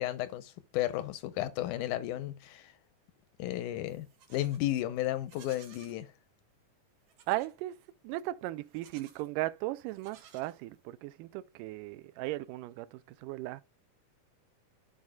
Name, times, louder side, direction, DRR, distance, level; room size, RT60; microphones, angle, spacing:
voice 1, 0.0-2.7 3.4-6.1, left 14 dB, 80° left, 2.0 m, -33 dB
Livestock farm animals working animals, 3.9-4.7 5.2-6.0 7.1-7.6 8.7-9.3 9.9-10.9, right 8 dB, 65° right, 2.4 m, -58 dB
voice 2, 7.3-7.8 8.0-13.6, right 16 dB, 85° right, 2.1 m, -37 dB
13.5 x 4.7 x 2.3 m
omnidirectional pair, 3.8 m